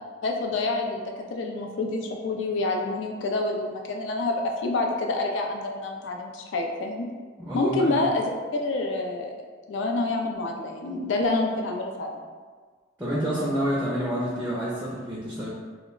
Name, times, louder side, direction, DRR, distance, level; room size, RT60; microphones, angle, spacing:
voice 1, 0.2-1.0 1.3-7.0 7.5-8.3 8.6-9.3 9.7-12.2, left 2 dB, 85° left, 2 dB, 0.4 m, -27 dB
voice 2, 7.4-8.0 13.0-15.5, equal, 10° right, -6 dB, 0.4 m, -28 dB
2.2 x 2.1 x 3.7 m, 1.5 s
head